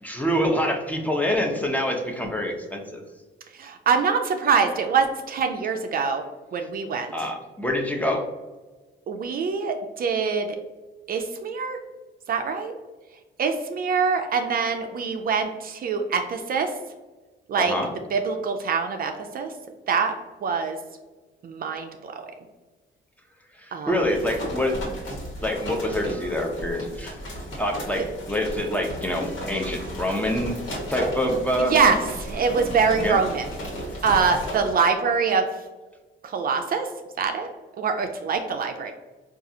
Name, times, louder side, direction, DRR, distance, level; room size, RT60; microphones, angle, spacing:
voice 1, 0.0-3.0 7.1-8.2 17.6-17.9 23.6-24.8 25.4-27.2 27.6-30.5 30.9-31.7 33.0-33.2, left 1 dB, 5° left, 2 dB, 0.6 m, -26 dB
voice 2, 3.5-6.2 6.5-7.1 9.1-10.5 11.1-11.8 12.3-12.7 13.4-16.7 17.5-17.7 18.1-19.5 19.9-20.2 20.4-20.8 21.4-22.3 23.7-24.1 28.0-28.1 31.6-33.4 34.0-35.5 36.2-36.9 37.2-37.5 37.8-38.9, right 5 dB, 50° right, 5 dB, 0.4 m, -24 dB
sound 1, 24.0-34.8, equal, 85° left, 1.2 m, -34 dB
3.9 x 2.4 x 2.7 m, 1.3 s
cardioid pair, 90°, 20 cm